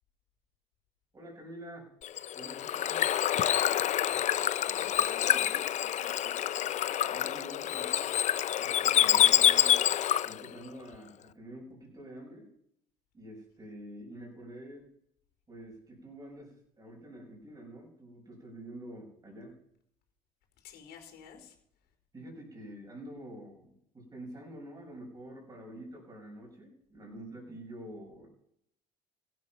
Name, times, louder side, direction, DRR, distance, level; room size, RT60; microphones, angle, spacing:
voice 1, 1.1-1.9 2.3-3.1 7.1-8.1 8.6-9.8 10.2-12.5 13.1-14.9 15.5-19.6 22.1-28.3, right 1 dB, 20° right, -1 dB, 5.8 m, -47 dB
Bird / Water, 2.0-10.5, left 11 dB, 40° left, 0.5 m, -27 dB
voice 2, 4.6-6.5 20.6-21.5, left 7 dB, 65° left, 4 dB, 4.2 m, -50 dB
16.0 x 9.6 x 5.9 m, 0.72 s
cardioid pair, 130°, 18 cm